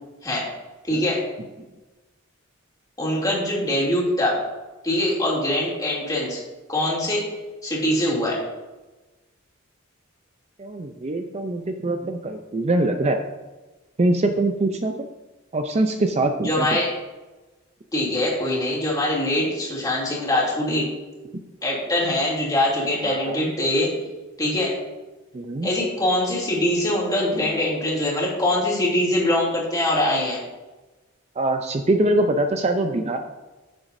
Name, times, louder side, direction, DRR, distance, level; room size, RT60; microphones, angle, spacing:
voice 1, 0.9-1.2 3.0-4.4 4.8-6.4 6.7-7.2 7.6-8.4 16.4-16.9 17.9-20.9 21.6-23.9 24.4-24.8 25.6-30.4, left 1 dB, 20° left, -5 dB, 2.8 m, -23 dB
voice 2, 10.6-13.2 14.0-14.9 15.5-16.8 23.0-23.4 25.3-25.7 31.4-33.2, right 2 dB, 30° right, 5 dB, 0.5 m, -23 dB
15.0 x 7.1 x 2.6 m, 1.2 s
head